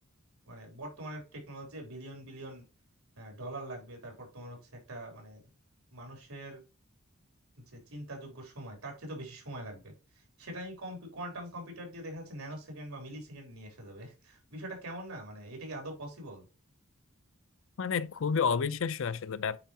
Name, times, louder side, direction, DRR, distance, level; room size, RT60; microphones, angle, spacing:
voice 1, 0.5-2.6 3.2-5.4 5.9-6.6 7.7-16.4, right 1 dB, 90° right, 3.6 m, -43 dB
voice 2, 17.8-19.6, left 6 dB, 65° left, 0.5 m, -30 dB
8.8 x 4.6 x 2.9 m
head